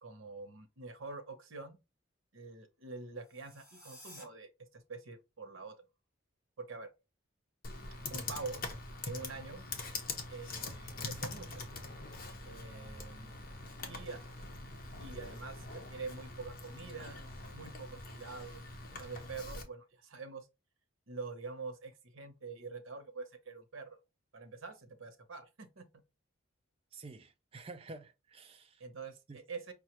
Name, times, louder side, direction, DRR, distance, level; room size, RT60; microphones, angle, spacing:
voice 1, 0.0-1.8 2.3-5.8 6.6-6.9 8.1-8.7 9.0-9.7 10.3-11.6 12.4-13.3 13.9-14.2 15.0-17.2 17.5-20.5 21.1-24.0 24.3-26.0 28.8-29.7, right 4 dB, 85° right, 0.9 m, -46 dB
sound 1, 3.2-4.2, equal, 10° right, 1.7 m, -54 dB
Computer keyboard, 7.6-19.6, left 3 dB, 45° left, 0.8 m, -44 dB
voice 2, 26.9-28.8 29.3-29.4, right 3 dB, 30° right, 0.4 m, -50 dB
5.2 x 2.3 x 2.9 m
head